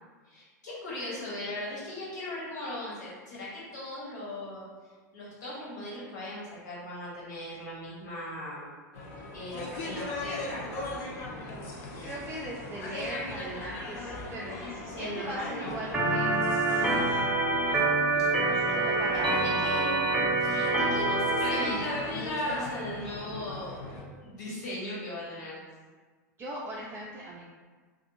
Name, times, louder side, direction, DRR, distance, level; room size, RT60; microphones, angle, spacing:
voice 1, 0.2-8.7 9.3-10.7 14.9-15.8 18.2-18.3 18.7-18.8 19.1-19.9 20.4-23.8 24.2-25.6, left 1 dB, 75° left, -7 dB, 1.2 m, -38 dB
sound 1, 8.9-24.0, left 2 dB, 55° left, 0.6 m, -38 dB
voice 2, 12.0-17.2 18.5-19.7 26.4-27.5, right 1 dB, 25° right, -4 dB, 0.4 m, -40 dB
Organ, 15.9-21.6, right 2 dB, 5° right, 0.8 m, -26 dB
2.5 x 2.5 x 2.8 m, 1.4 s
hypercardioid pair, 95°, 10 cm